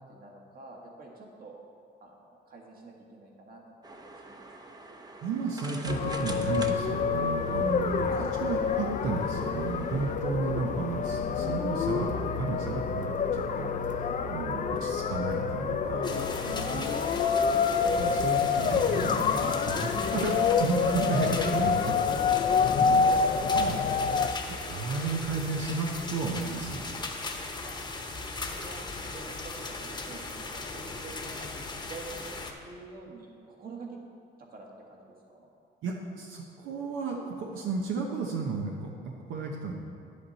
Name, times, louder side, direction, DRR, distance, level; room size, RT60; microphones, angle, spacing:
voice 1, 0.0-1.6 2.0-4.4 8.1-8.3 11.1-11.2 16.7-17.7 27.6-27.8 28.3-31.5 31.7-34.0 34.4-35.5, right 3 dB, 45° right, -1 dB, 1.8 m, -48 dB
sound 1, 3.8-10.2, right 2 dB, 20° right, 0.8 m, -45 dB
voice 2, 5.2-16.8 18.0-23.1 23.5-23.9 24.5-26.8 35.8-39.7, right 4 dB, 80° right, 0 dB, 1.0 m, -33 dB
sound 2, 5.9-24.3, left 6 dB, 40° left, 0.5 m, -27 dB
sound 3, 16.0-32.5, left 3 dB, 20° left, 1.0 m, -38 dB
10.5 x 8.4 x 4.2 m, 2.5 s
cardioid pair, 110°, 20 cm